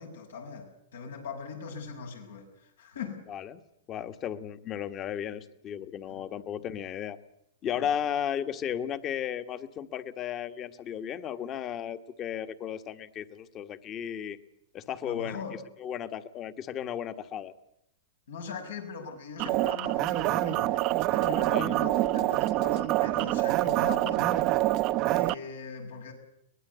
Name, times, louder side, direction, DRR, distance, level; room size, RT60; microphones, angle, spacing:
voice 1, 0.0-3.3 6.1-6.3 7.7-7.9 15.0-15.7 18.3-24.8 25.1-26.1, left 5 dB, 90° left, 3 dB, 6.5 m, -41 dB
voice 2, 3.3-3.6 3.9-7.2 7.6-14.4 14.7-15.4 15.8-17.5 21.5-21.7, left 9 dB, 30° left, 11 dB, 1.4 m, -34 dB
sound 1, 19.4-25.3, right 17 dB, 40° right, 0.8 m, -26 dB
23.0 x 20.0 x 8.2 m, 0.79 s
hypercardioid pair, 135°, 0 cm